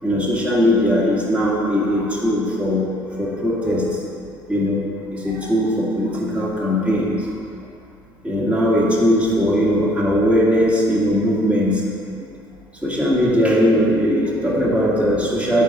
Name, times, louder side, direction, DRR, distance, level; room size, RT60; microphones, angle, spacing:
voice 1, 0.0-2.9 3.2-3.8 4.5-4.8 5.1-7.2 8.2-12.0 12.8-15.6, equal, 10° right, -5 dB, 2.0 m, -19 dB
8.1 x 4.1 x 5.9 m, 2.4 s
figure-of-eight pair, 65°, 12 cm